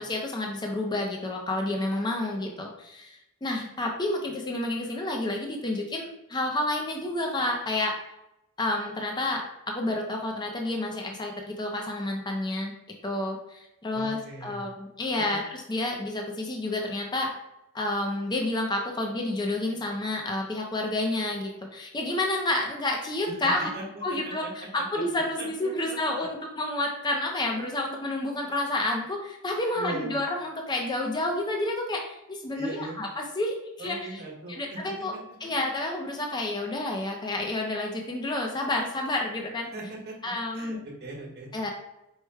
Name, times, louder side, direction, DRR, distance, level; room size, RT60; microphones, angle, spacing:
voice 1, 0.0-7.9 8.6-12.7 13.0-17.3 17.7-23.7 24.0-34.2 34.6-35.1 35.4-39.7 40.2-40.8 41.5-41.7, left 2 dB, 20° left, 1 dB, 0.5 m, -30 dB
voice 2, 13.9-14.6 15.2-15.4 23.3-23.8 24.1-24.5 24.9-25.0 25.4-26.3 29.7-30.1 32.5-33.0 33.8-34.8 35.1-35.5 39.7-40.2 40.5-41.5, right 2 dB, 45° right, -2 dB, 1.1 m, -39 dB
4.7 x 2.1 x 4.4 m, 0.88 s
head